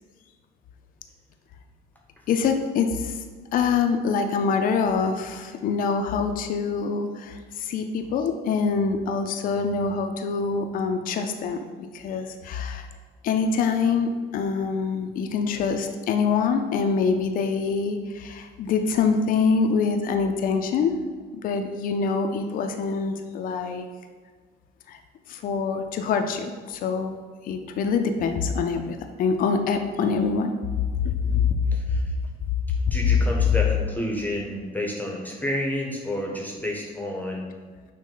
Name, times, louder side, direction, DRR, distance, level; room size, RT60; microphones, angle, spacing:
voice 1, 2.3-3.2 3.5-11.6 11.9-12.9 13.2-21.0 21.4-23.9 24.9-25.0 25.3-27.2 27.4-30.5 31.0-31.6, left 5 dB, 55° left, 6 dB, 0.4 m, -25 dB
voice 2, 31.2-32.1 32.9-37.5, left 1 dB, 10° left, -1 dB, 0.7 m, -30 dB
6.2 x 2.1 x 3.8 m, 1.5 s
cardioid pair, 110°, 17 cm